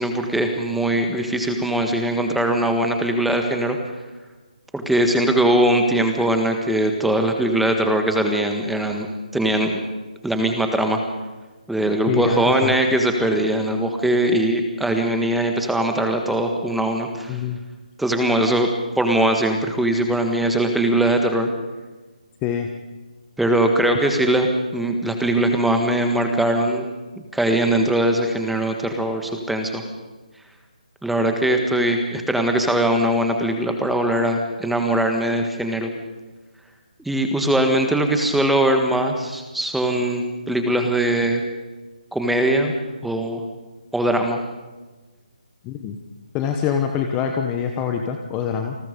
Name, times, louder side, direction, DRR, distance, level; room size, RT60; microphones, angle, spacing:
voice 1, 0.0-3.8 4.7-9.1 9.3-9.8 10.2-11.0 11.7-17.4 18.0-18.7 19.0-21.5 23.4-24.5 24.7-26.8 27.3-29.8 31.0-35.9 37.0-41.4 42.1-42.7 43.0-43.4 43.9-44.4, right 1 dB, ahead, 4 dB, 1.7 m, -21 dB
voice 2, 12.1-12.7 17.3-17.6 22.4-22.7 45.6-46.0 46.3-48.8, left 7 dB, 15° left, 5 dB, 1.1 m, -24 dB
29.0 x 20.0 x 5.4 m, 1.2 s
hypercardioid pair, 165°, 4 cm